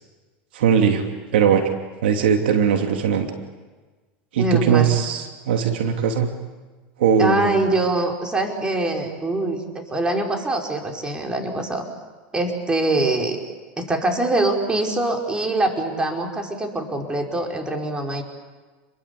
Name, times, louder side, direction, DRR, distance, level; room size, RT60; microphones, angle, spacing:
voice 1, 0.5-1.6 2.0-3.3 4.3-6.3 7.0-7.6, right 7 dB, 85° right, 5 dB, 2.9 m, -19 dB
voice 2, 4.4-4.9 7.2-11.8 12.3-13.4 13.8-18.2, right 2 dB, 15° right, 2 dB, 5.4 m, -23 dB
29.5 x 22.5 x 8.5 m, 1.3 s
supercardioid pair, 110°, 5 cm